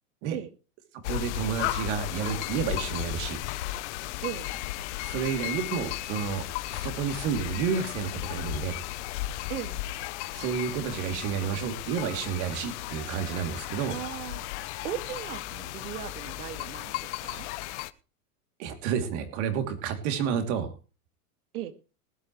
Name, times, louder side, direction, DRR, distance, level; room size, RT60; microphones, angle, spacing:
sound 1, 1.0-17.9, left 16 dB, 50° left, 0.9 m, -35 dB
voice 1, 1.1-3.4 5.1-8.8 10.3-13.9 18.6-20.7, right 7 dB, 50° right, 7 dB, 3.0 m, -30 dB
voice 2, 9.5-9.8 13.8-14.4 14.8-17.5 21.5-21.7, right 11 dB, 75° right, 10 dB, 2.3 m, -37 dB
19.5 x 11.5 x 3.2 m, 0.33 s
supercardioid pair, 150°, 45 cm